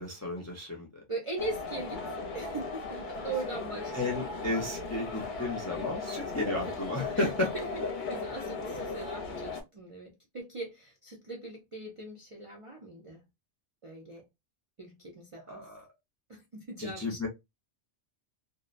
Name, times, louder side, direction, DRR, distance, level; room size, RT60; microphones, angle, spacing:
voice 1, 0.0-1.0 3.9-7.5 15.5-15.8 16.8-17.3, left 2 dB, 25° left, 0.4 m, -33 dB
voice 2, 1.1-2.0 2.3-4.2 7.1-7.7 8.1-13.2 13.8-14.2 14.8-15.7 16.3-17.2, right 2 dB, 45° right, 0.4 m, -40 dB
sound 1, 1.4-9.6, left 3 dB, 50° left, 0.7 m, -37 dB
2.6 x 2.1 x 2.4 m
omnidirectional pair, 1.2 m